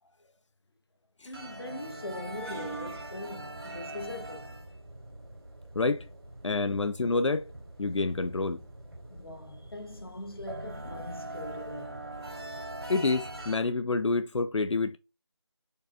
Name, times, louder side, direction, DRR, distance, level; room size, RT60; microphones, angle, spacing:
voice 1, 1.2-4.5 9.1-12.1, left 2 dB, 55° left, 1.0 m, -41 dB
sound 1, 1.3-13.6, right 2 dB, 55° right, 3.0 m, -42 dB
voice 2, 5.7-6.1 6.4-7.5 7.8-8.6 12.9-15.0, left 3 dB, 85° left, 0.5 m, -28 dB
4.6 x 4.6 x 2.4 m
figure-of-eight pair, 175°, 15 cm